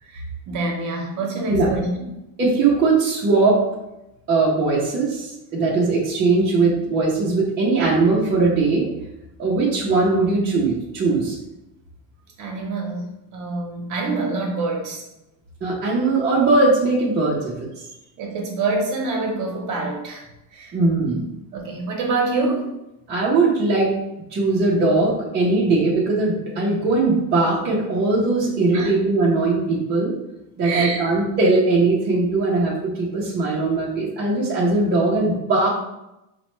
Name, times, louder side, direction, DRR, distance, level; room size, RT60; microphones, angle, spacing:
voice 1, 0.0-2.2 12.4-15.1 18.2-20.2 20.5-20.7 21.5-22.7 28.7-28.9 30.6-31.0, right 3 dB, 40° right, 0 dB, 0.8 m, -26 dB
voice 2, 2.4-3.6 4.3-8.8 9.4-11.4 15.6-17.5 20.7-21.2 23.1-23.9 24.3-30.2 30.6-35.7, right 3 dB, 25° right, -6 dB, 0.5 m, -20 dB
4.0 x 2.2 x 3.0 m, 0.92 s
cardioid pair, 150°, 46 cm